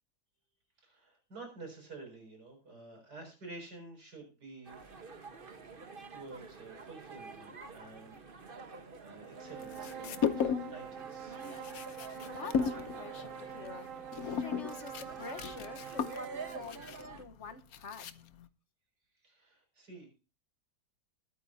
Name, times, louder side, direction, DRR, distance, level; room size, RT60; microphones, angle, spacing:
voice 1, 0.8-5.0 6.1-11.4 19.2-20.2, right 3 dB, 80° right, 1 dB, 6.7 m, -50 dB
sound 1, 4.7-17.2, right 3 dB, 35° right, 1.4 m, -48 dB
sound 2, 9.3-16.7, right 10 dB, 60° right, 1.0 m, -46 dB
sound 3, 9.6-10.8 11.1-18.5, left 7 dB, 65° left, 1.2 m, -36 dB
voice 2, 12.0-13.9 14.2-16.9 17.2-18.0, left 5 dB, 45° left, 9 dB, 1.4 m, -47 dB
20.5 x 9.2 x 2.8 m, 0.33 s
omnidirectional pair, 1.7 m